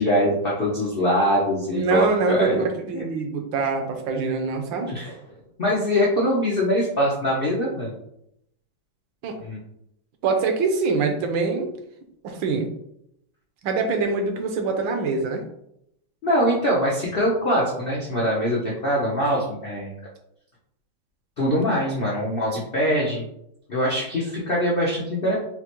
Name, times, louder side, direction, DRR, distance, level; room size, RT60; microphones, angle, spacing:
voice 1, 0.0-2.6 2.9-3.0 4.9-5.1 5.6-7.9 9.4-9.6 16.2-19.9 21.4-23.2 23.7-25.3, equal, 85° left, -4 dB, 0.5 m, -23 dB
voice 2, 1.7-4.9 9.2-9.4 10.2-11.7 12.2-12.7 13.6-15.4, right 4 dB, 75° right, 4 dB, 1.4 m, -24 dB
5.6 x 2.1 x 3.0 m, 0.77 s
omnidirectional pair, 2.2 m